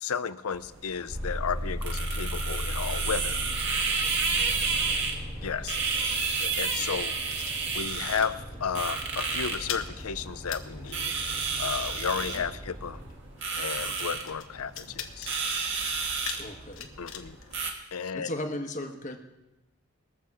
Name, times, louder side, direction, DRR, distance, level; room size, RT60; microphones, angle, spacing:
voice 1, 0.0-3.4 5.4-5.8 6.1-7.1 7.7-8.4 8.6-11.1 11.6-13.0 13.6-15.3 17.0-17.4 17.9-18.3, left 6 dB, 80° left, 14 dB, 0.6 m, -33 dB
sound 1, 0.5-17.7, right 4 dB, 55° right, 1.9 m, -32 dB
sound 2, 1.1-13.2, equal, 40° right, 2.2 m, -38 dB
voice 2, 4.8-5.3 6.0-6.1 12.2-12.5 16.4-16.9 18.1-19.2, left 1 dB, 35° left, 5 dB, 1.3 m, -37 dB
sound 3, 5.8-8.2 8.5-8.8 9.0-18.4, left 8 dB, 60° left, 1.2 m, -44 dB
21.5 x 7.5 x 4.8 m, 1.0 s
head